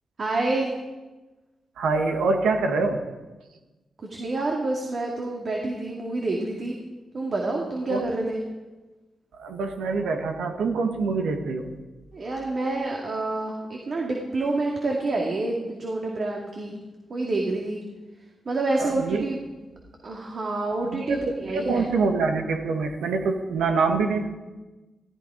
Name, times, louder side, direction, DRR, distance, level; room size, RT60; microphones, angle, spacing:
voice 1, 0.2-0.7 4.1-6.8 7.1-8.4 12.1-16.7 17.1-17.8 18.5-19.4 20.0-21.9, right 2 dB, 55° right, 0 dB, 2.5 m, -28 dB
voice 2, 1.8-3.0 7.9-8.0 9.4-11.7 18.8-19.2 20.8-21.2 21.4-24.3, right 4 dB, 90° right, 5 dB, 1.6 m, -25 dB
15.5 x 14.5 x 5.1 m, 1.2 s
cardioid pair, 55°, 0 cm